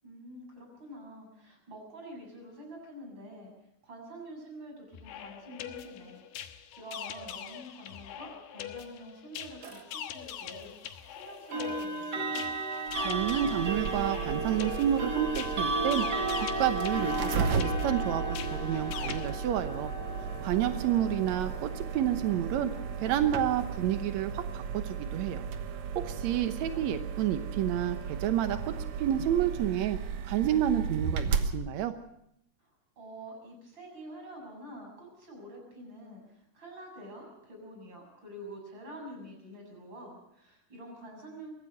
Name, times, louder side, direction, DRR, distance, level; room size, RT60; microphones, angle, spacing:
voice 1, 0.0-3.5 3.8-6.2 6.5-12.5 26.2-26.4 26.7-26.9 32.6-32.7 33.0-41.5, right 1 dB, 30° right, 1 dB, 7.6 m, -47 dB
sound 1, 4.9-19.3, left 10 dB, 85° left, 3.3 m, -43 dB
sound 2, 9.6-9.8 11.5-24.3, right 2 dB, 45° right, 1.3 m, -35 dB
sound 3, 12.9-31.5, right 6 dB, 60° right, 2.0 m, -35 dB
voice 2, 13.0-16.0 16.4-18.2 18.5-19.9 20.4-22.7 23.0-25.4 25.9-28.7 29.0-30.0 30.3-31.9, right 11 dB, 75° right, 8 dB, 1.6 m, -29 dB
23.5 x 17.5 x 6.5 m, 0.76 s
omnidirectional pair, 4.5 m